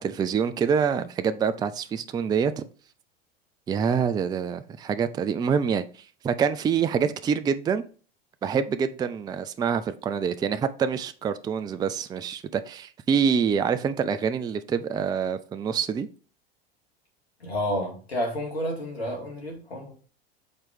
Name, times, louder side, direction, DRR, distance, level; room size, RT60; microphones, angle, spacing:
voice 1, 0.0-2.7 3.7-5.8 6.2-7.8 8.4-16.1, right 7 dB, 15° right, 0.4 m, -26 dB
voice 2, 17.4-19.9, equal, 90° left, 2.1 m, -30 dB
6.5 x 4.4 x 3.5 m
hypercardioid pair, 80°, 30 cm